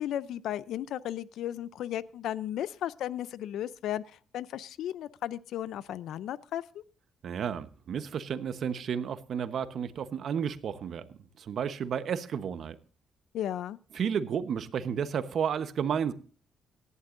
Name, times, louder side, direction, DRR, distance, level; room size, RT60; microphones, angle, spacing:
voice 1, 0.0-4.0 4.3-6.8 13.3-13.8, left 11 dB, 80° left, 0.5 m, -35 dB
voice 2, 7.2-12.8 13.9-16.1, right 7 dB, 60° right, 1.0 m, -32 dB
17.5 x 11.0 x 2.6 m
cardioid pair, 90°, 0 cm